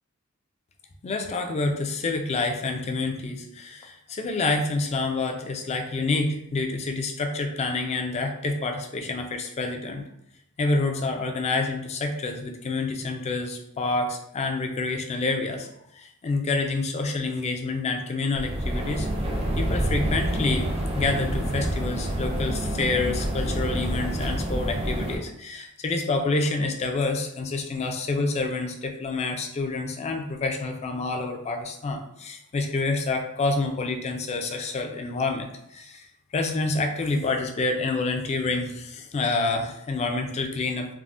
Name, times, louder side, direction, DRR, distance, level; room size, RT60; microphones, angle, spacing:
voice 1, 1.0-10.0 10.6-15.7 15.9-19.1 19.6-36.0 36.3-40.9, left 3 dB, 30° left, 4 dB, 0.3 m, -28 dB
sound 1, 18.3-25.2, right 1 dB, 25° right, 0.5 m, -27 dB
3.5 x 2.0 x 2.4 m, 0.79 s
head